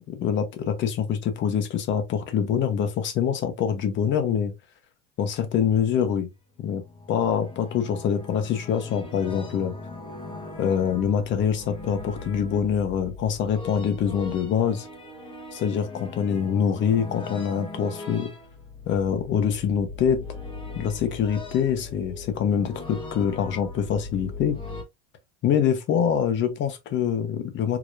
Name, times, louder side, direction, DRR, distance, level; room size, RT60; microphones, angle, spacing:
voice 1, 0.1-4.5 5.2-6.3 6.6-6.8 7.1-9.7 10.6-14.9 15.5-18.3 18.9-20.2 20.7-24.6 25.4-27.8, left 8 dB, 40° left, 1.1 m, -25 dB
sound 1, 6.6-24.8, left 3 dB, 15° left, 1.1 m, -39 dB
4.9 x 2.9 x 2.5 m
supercardioid pair, 145°, 30 cm